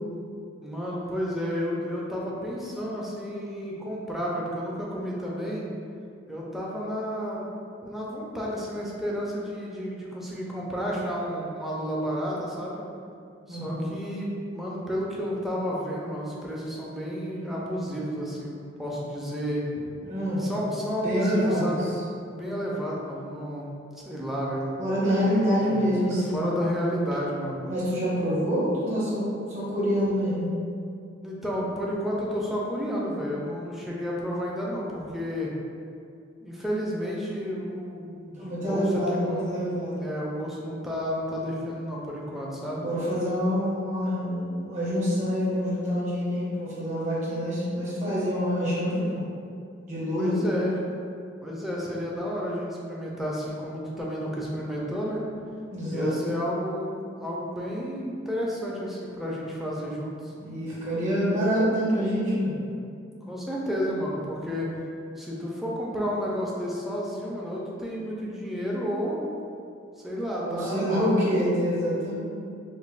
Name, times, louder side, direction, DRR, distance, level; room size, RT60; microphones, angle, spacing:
voice 1, 0.6-5.6 6.3-7.5 7.8-12.8 13.5-19.8 20.4-21.9 22.4-24.6 25.6-27.6 31.2-35.5 36.4-39.5 40.0-42.8 50.2-50.8 51.4-55.2 55.9-60.3 63.3-64.8 65.2-69.2 70.0-70.9, equal, ahead, -5 dB, 0.4 m, -31 dB
voice 2, 13.5-14.0 20.0-20.8 21.0-21.8 24.8-26.5 27.6-30.5 38.3-40.1 42.8-49.2 49.9-50.3 55.7-56.2 60.4-62.6 70.4-72.2, equal, 40° right, -9 dB, 1.1 m, -26 dB
5.1 x 2.1 x 2.4 m, 2.4 s
head